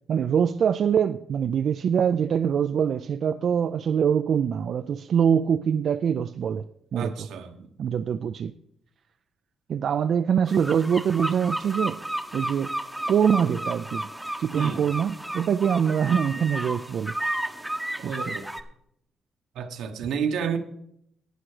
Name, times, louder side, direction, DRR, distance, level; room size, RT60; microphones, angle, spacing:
voice 1, 0.1-6.6 6.9-7.3 7.8-8.5 9.7-12.0 12.3-12.7 13.1-14.1 14.4-17.1 18.0-18.4, right 8 dB, 55° right, 0.4 m, -24 dB
voice 2, 7.0-7.7 14.5-14.8 18.0-18.4 19.5-20.6, right 7 dB, 85° right, 1.3 m, -30 dB
sound 1, 10.5-18.6, right 1 dB, 5° right, 0.8 m, -33 dB
11.5 x 8.8 x 4.9 m
cardioid pair, 120°, 0 cm